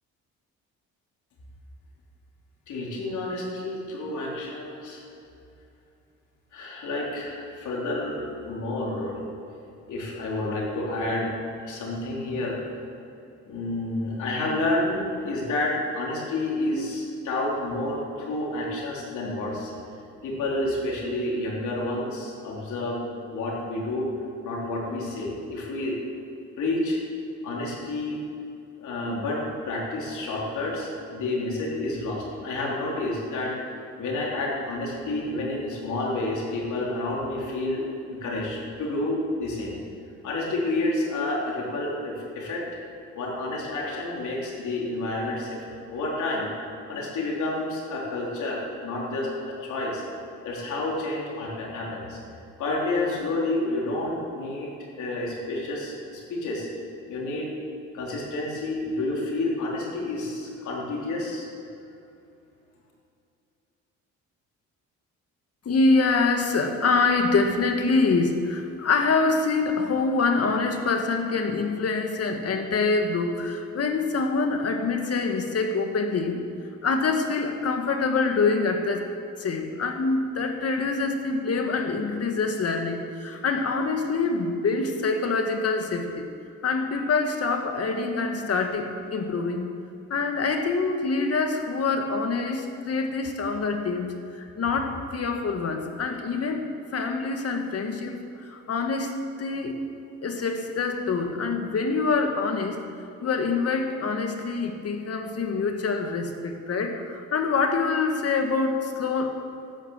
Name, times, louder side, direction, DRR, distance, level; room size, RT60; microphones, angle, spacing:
voice 1, 2.7-5.0 6.5-9.2 9.9-11.3 11.6-12.6 13.5-19.7 20.2-23.0 23.3-24.1 24.4-26.0 26.6-27.0 27.4-28.2 28.8-33.5 34.0-39.7 40.2-42.6 43.1-45.6 45.9-46.5 46.9-50.0 50.4-52.2 52.6-54.7 55.0-56.7 57.1-57.5 57.9-61.5, left 2 dB, 75° left, -3 dB, 4.3 m, -29 dB
voice 2, 65.7-76.4 76.8-79.1 79.4-86.3 86.6-89.7 90.1-99.8 100.2-102.8 103.2-109.4, left 4 dB, 55° left, 4 dB, 1.9 m, -25 dB
13.0 x 9.9 x 7.6 m, 2.6 s
cardioid pair, 90°, 30 cm